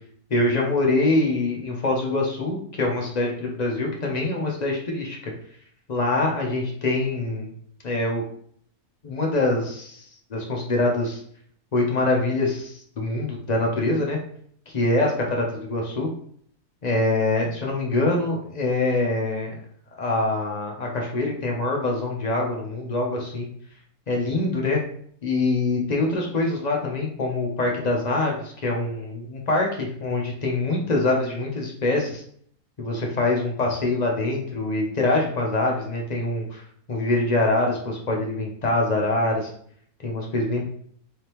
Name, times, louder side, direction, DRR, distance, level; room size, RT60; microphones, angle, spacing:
voice 1, 0.3-5.2 5.9-7.5 7.8-8.2 9.0-11.2 11.7-14.2 14.7-16.1 16.8-19.5 20.0-23.5 24.1-24.8 25.2-32.2 32.8-36.6 36.9-39.5 40.0-40.6, left 2 dB, 45° left, -1 dB, 0.5 m, -24 dB
3.5 x 3.4 x 3.0 m, 0.62 s
omnidirectional pair, 1.6 m